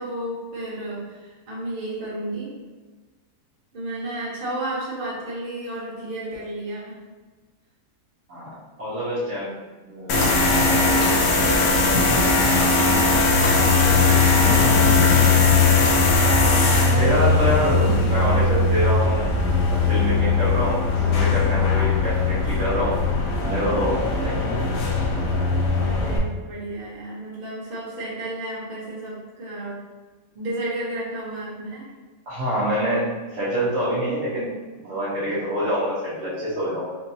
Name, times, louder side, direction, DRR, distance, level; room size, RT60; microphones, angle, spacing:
voice 1, 0.0-2.5 3.7-7.0 10.5-10.9 12.6-15.1 25.8-29.8 30.3-31.9, right 1 dB, 40° right, -8 dB, 1.2 m, -32 dB
voice 2, 8.3-9.5 9.8-10.4 10.6-11.6 16.8-19.3 19.7-23.0 23.5-24.5 32.3-34.5 34.8-37.0, equal, 65° right, -11 dB, 1.4 m, -26 dB
sound 1, 10.1-26.2, left 3 dB, 80° left, 1.0 m, -19 dB
sound 2, 10.2-10.5 11.0-11.2 11.6-11.9 12.6-12.8 13.4-13.7 14.6-14.8 15.8-16.1, left 1 dB, 50° left, 0.6 m, -32 dB
4.4 x 2.6 x 2.7 m, 1.3 s
omnidirectional pair, 1.5 m